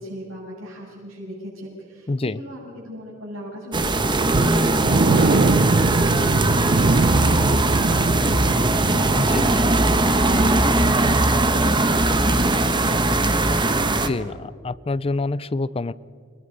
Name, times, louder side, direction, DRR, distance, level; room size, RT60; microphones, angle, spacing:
voice 1, 0.0-13.3 13.6-14.1, equal, 90° right, -7 dB, 7.7 m, -37 dB
voice 2, 2.1-2.4 5.1-5.4 9.1-9.5 14.1-15.9, left 2 dB, 30° left, 17 dB, 0.5 m, -26 dB
sound 1, 3.7-14.1, right 2 dB, 25° right, 1.2 m, -20 dB
sound 2, 4.3-12.1 12.3-12.5 12.9-13.0, right 3 dB, 45° right, 0.6 m, -24 dB
30.0 x 21.0 x 5.5 m, 2.1 s
head